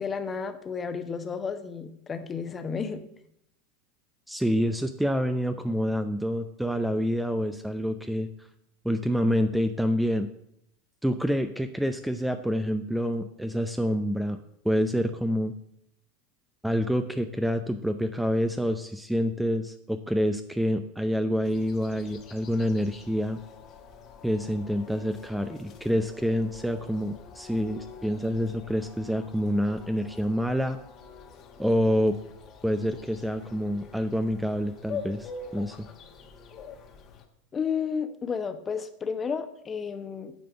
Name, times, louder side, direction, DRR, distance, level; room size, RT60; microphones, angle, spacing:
voice 1, 0.0-3.0 37.5-40.3, left 6 dB, 25° left, 9 dB, 1.0 m, -32 dB
voice 2, 4.3-8.5 8.8-10.3 11.0-14.4 14.6-15.5 16.6-23.4 24.2-30.8 31.6-32.2 32.6-35.9, equal, 5° right, 8 dB, 0.6 m, -27 dB
sound 1, 21.4-37.3, left 5 dB, 40° left, 1.4 m, -45 dB
9.5 x 5.1 x 6.7 m, 0.77 s
figure-of-eight pair, 80°, 0 cm